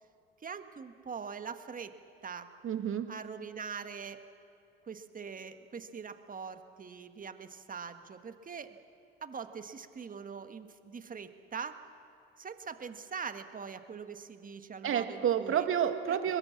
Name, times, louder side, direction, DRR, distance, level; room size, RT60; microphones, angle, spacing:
voice 1, 0.4-1.9 2.2-2.5 3.1-4.2 4.9-8.8 9.2-11.8 12.4-15.7 16.1-16.2, right 6 dB, 30° right, 9 dB, 1.7 m, -43 dB
voice 2, 2.6-3.1 14.8-16.4, right 9 dB, 45° right, 8 dB, 2.0 m, -29 dB
23.5 x 22.0 x 7.3 m, 2.6 s
hypercardioid pair, 65°, 30 cm